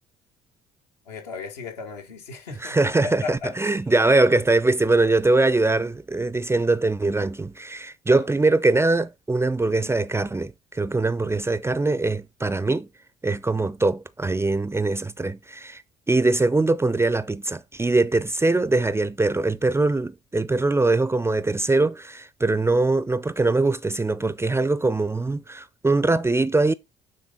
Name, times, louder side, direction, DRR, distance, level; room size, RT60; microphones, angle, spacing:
voice 1, 1.1-3.8 8.1-8.2, left 4 dB, 80° left, 1.4 m, -36 dB
voice 2, 2.6-12.9 13.2-15.8 16.1-26.7, right 2 dB, 10° right, 0.4 m, -22 dB
9.3 x 3.9 x 3.7 m
figure-of-eight pair, 50°, 21 cm